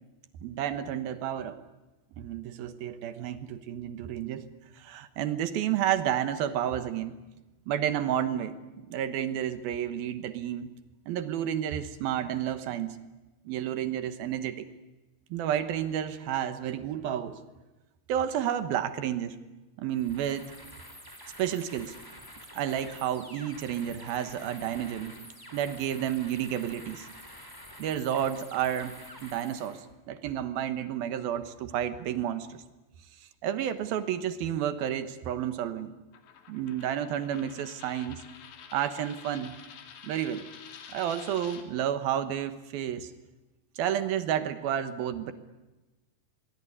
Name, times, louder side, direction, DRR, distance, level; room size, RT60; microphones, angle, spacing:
voice 1, 0.4-1.6 2.2-4.4 4.8-7.2 7.7-10.7 11.1-13.0 13.5-14.7 15.3-17.4 18.1-19.4 19.8-20.4 21.4-22.0 22.5-25.1 25.5-27.1 27.8-28.9 29.2-32.6 33.4-35.9 36.5-38.2 38.7-39.5 40.0-40.4 40.9-43.1 43.8-45.3, right 10 dB, 65° right, 11 dB, 2.7 m, -31 dB
sound 1, 19.9-29.8, equal, 5° left, 3.7 m, -48 dB
Coin (dropping), 36.1-41.6, left 7 dB, 75° left, 4.5 m, -49 dB
23.0 x 23.0 x 9.8 m, 1.1 s
omnidirectional pair, 5.1 m